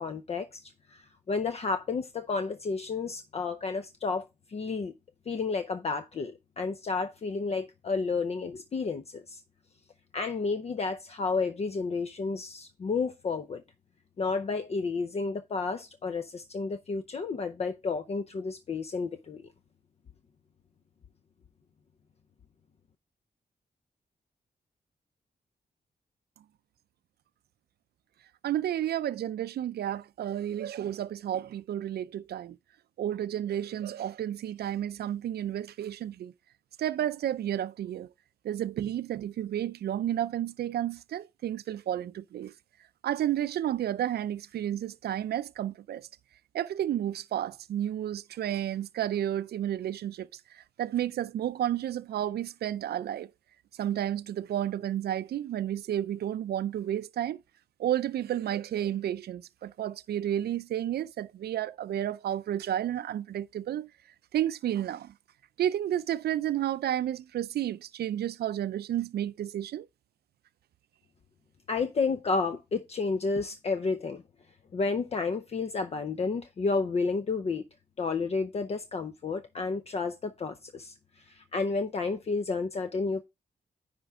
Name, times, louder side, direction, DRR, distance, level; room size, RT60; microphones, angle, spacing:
voice 1, 0.0-4.9 5.3-9.4 10.1-13.6 14.2-19.4 71.7-74.2 74.7-77.6 78.0-83.2, left 4 dB, 40° left, 0.6 m, -31 dB
voice 2, 28.4-32.6 33.0-36.3 36.8-38.1 38.4-42.5 43.0-46.1 46.5-53.3 53.8-57.4 57.8-63.9 64.3-65.1 65.6-69.9, right 11 dB, 85° right, 0.4 m, -31 dB
10.0 x 5.1 x 3.5 m
wide cardioid pair, 165°, 16 cm